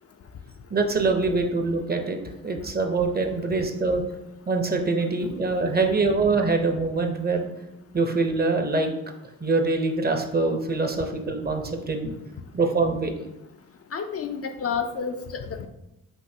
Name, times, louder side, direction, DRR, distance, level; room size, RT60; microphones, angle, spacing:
voice 1, 0.7-2.2 2.4-4.0 4.5-7.5 7.9-8.9 9.4-12.1 12.5-13.1, right 3 dB, 25° right, 4 dB, 0.7 m, -24 dB
voice 2, 13.9-15.7, left 6 dB, 40° left, 5 dB, 0.5 m, -30 dB
5.3 x 2.6 x 2.7 m, 0.90 s
supercardioid pair, 45°, 35 cm